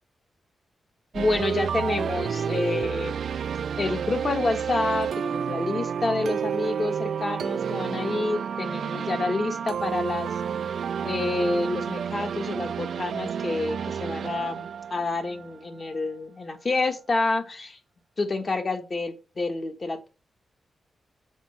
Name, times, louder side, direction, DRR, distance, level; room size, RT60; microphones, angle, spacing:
voice 1, 1.1-3.2 3.8-10.3 11.0-17.8 18.2-20.1, left 3 dB, 35° left, 6 dB, 1.5 m, -28 dB
sound 1, 1.1-16.0, right 7 dB, 70° right, 0.3 m, -30 dB
7.3 x 5.3 x 5.5 m, 0.32 s
wide cardioid pair, 145°, 0 cm